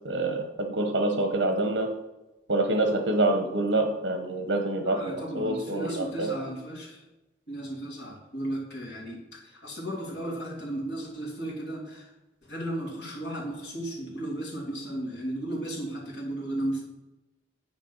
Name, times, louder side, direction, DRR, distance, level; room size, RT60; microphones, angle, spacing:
voice 1, 0.0-1.9 2.5-6.3, right 2 dB, 70° right, 5 dB, 1.0 m, -26 dB
voice 2, 4.8-7.0 7.5-12.1 12.4-16.8, right 1 dB, 70° left, -4 dB, 3.1 m, -35 dB
9.3 x 5.1 x 5.5 m, 1.0 s
head